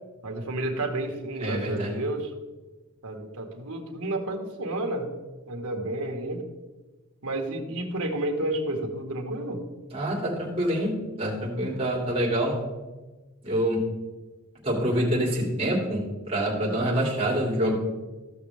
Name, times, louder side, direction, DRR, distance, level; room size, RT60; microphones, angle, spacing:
voice 1, 0.2-2.3 3.0-5.1 5.5-6.4 7.2-9.6, right 1 dB, 75° right, 3 dB, 1.7 m, -31 dB
voice 2, 1.4-1.9 9.9-12.6 13.4-13.9 14.6-17.8, equal, 25° right, -3 dB, 2.7 m, -26 dB
15.0 x 6.5 x 3.5 m, 1.2 s
head